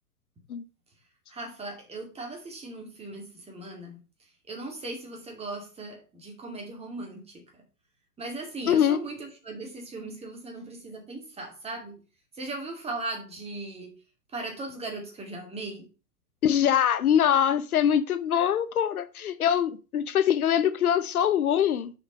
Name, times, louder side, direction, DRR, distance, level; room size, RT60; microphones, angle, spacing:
voice 1, 1.3-4.0 4.5-7.6 8.2-12.0 12.3-13.9 14.3-15.9, right 2 dB, 15° right, 2.4 m, -38 dB
voice 2, 8.7-9.0 16.4-21.9, left 9 dB, 70° left, 0.9 m, -23 dB
6.5 x 5.4 x 5.3 m
figure-of-eight pair, 110°, 46 cm